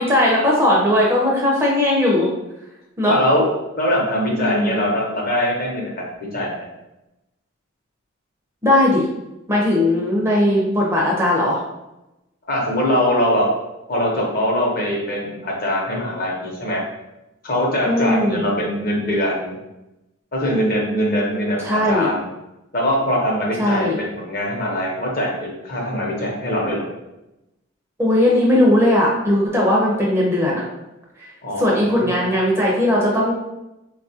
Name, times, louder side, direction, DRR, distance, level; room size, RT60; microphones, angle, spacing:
voice 1, 0.0-2.3 3.0-3.2 4.3-4.8 8.6-9.0 9.5-11.6 17.8-18.4 21.6-22.1 23.6-24.0 28.0-30.6 31.6-33.3, left 1 dB, 10° right, -4 dB, 0.5 m, -18 dB
voice 2, 3.1-3.5 3.7-5.8 6.1-6.7 12.5-13.4 13.9-16.8 17.4-19.6 20.3-22.2 22.7-26.8 31.4-32.2, equal, 40° left, -2 dB, 0.8 m, -22 dB
3.9 x 2.4 x 2.7 m, 0.94 s
head